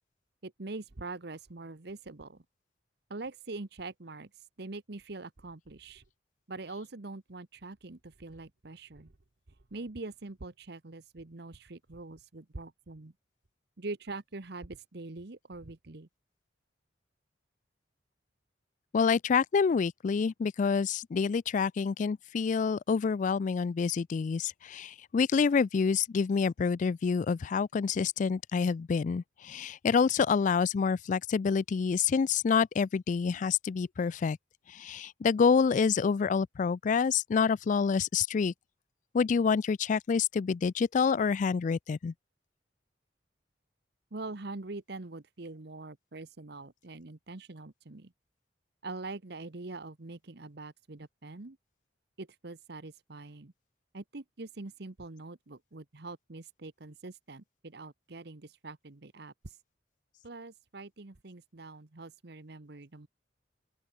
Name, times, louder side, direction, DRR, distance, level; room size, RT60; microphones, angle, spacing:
voice 1, 0.4-2.4 3.1-6.0 6.5-9.1 9.7-13.1 13.8-16.1 44.1-48.1 48.8-51.6 52.2-53.5 53.9-59.6 60.2-63.1, right 3 dB, 60° right, 1.1 m, -43 dB
voice 2, 18.9-34.4 34.7-38.5 39.1-42.1, left 5 dB, 45° left, 0.3 m, -27 dB
open air
head